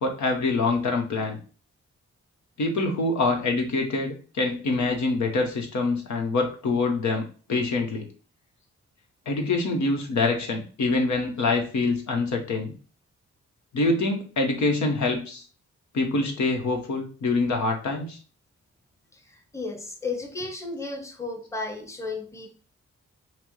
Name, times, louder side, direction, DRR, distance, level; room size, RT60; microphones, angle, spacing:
voice 1, 0.0-1.4 2.6-8.1 9.3-12.7 13.7-15.4 15.9-18.2, left 3 dB, 75° left, 1.0 m, -25 dB
voice 2, 19.5-22.5, left 3 dB, 10° left, 0.8 m, -33 dB
5.8 x 2.0 x 3.1 m
cardioid pair, 65°, 29 cm